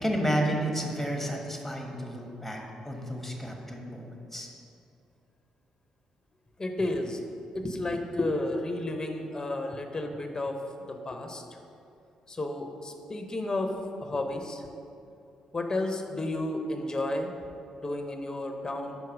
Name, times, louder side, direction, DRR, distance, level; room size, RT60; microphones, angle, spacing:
voice 1, 0.0-4.5, equal, 5° left, 1 dB, 1.4 m, -31 dB
voice 2, 6.6-7.2 7.5-11.5 12.3-13.7 14.0-14.6 15.5-17.3 17.7-19.0, left 2 dB, 25° left, 4 dB, 0.8 m, -32 dB
5.6 x 4.6 x 6.0 m, 2.6 s
hypercardioid pair, 50°, 2 cm